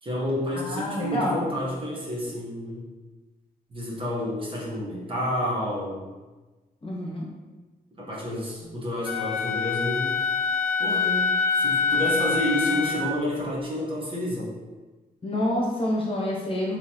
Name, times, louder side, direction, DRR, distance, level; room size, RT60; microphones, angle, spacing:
voice 1, 0.0-2.8 3.7-6.1 8.0-10.2 10.8-14.5, left 1 dB, 35° right, -5 dB, 1.0 m, -30 dB
voice 2, 0.5-1.4 6.8-7.3 15.2-16.8, left 1 dB, 35° left, -3 dB, 0.8 m, -27 dB
Wind instrument woodwind instrument, 9.0-13.1, left 5 dB, 70° left, 0.6 m, -25 dB
3.9 x 2.9 x 2.9 m, 1.2 s
wide cardioid pair, 125°, 16 cm